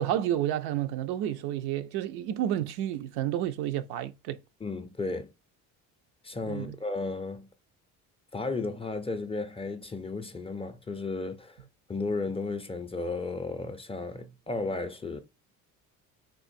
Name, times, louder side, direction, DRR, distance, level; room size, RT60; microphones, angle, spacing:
voice 1, 0.0-4.4 6.5-6.8, right 11 dB, 75° right, 0.5 m, -30 dB
voice 2, 4.6-5.3 6.2-7.5 8.3-11.6 11.9-15.2, left 3 dB, 15° left, 0.4 m, -34 dB
3.7 x 2.5 x 2.5 m
supercardioid pair, 85°, 38 cm